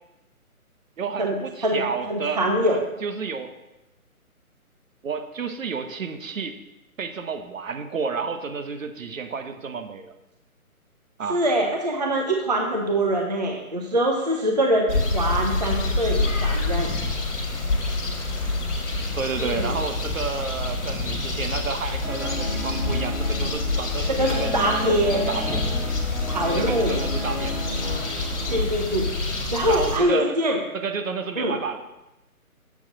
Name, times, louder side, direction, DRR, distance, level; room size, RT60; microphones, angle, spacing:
voice 1, 1.0-3.5 5.0-6.6 7.0-10.1 11.2-11.4 19.2-24.5 24.8-25.6 26.5-27.6 28.5-28.7 29.7-30.4 30.7-31.8, right 5 dB, 60° right, 8 dB, 0.8 m, -31 dB
voice 2, 2.1-2.8 11.3-16.9 19.4-19.8 24.1-25.3 26.3-27.0 28.5-29.1 29.5-30.6 31.4-31.5, right 1 dB, 30° right, 2 dB, 0.5 m, -23 dB
sound 1, 14.9-30.0, left 2 dB, 50° left, 1.6 m, -27 dB
Guitar, 22.0-28.5, equal, 90° right, 2.8 m, -34 dB
7.1 x 5.7 x 3.8 m, 0.98 s
figure-of-eight pair, 150°, 44 cm